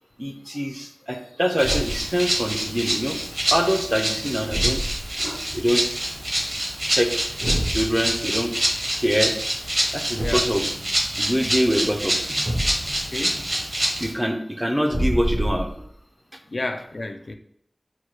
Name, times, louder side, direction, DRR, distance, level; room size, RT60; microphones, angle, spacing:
voice 1, 0.2-3.2 3.5-4.9 5.2-5.9 6.9-7.2 7.7-8.6 8.9-9.4 9.9-10.7 11.2-12.4 14.0-15.8, equal, 10° right, 0.4 m, -24 dB
Rattle (instrument), 1.6-14.1, right 1 dB, 45° right, 0.9 m, -26 dB
Thump thud, 1.6-2.1 4.5-5.2 7.4-7.9 10.2-10.6 12.5-13.1 14.9-15.9, equal, 85° right, 1.5 m, -27 dB
voice 2, 13.1-13.4 16.5-17.3, left 2 dB, 65° left, 0.3 m, -30 dB
4.3 x 2.2 x 4.6 m
wide cardioid pair, 65°, 0 cm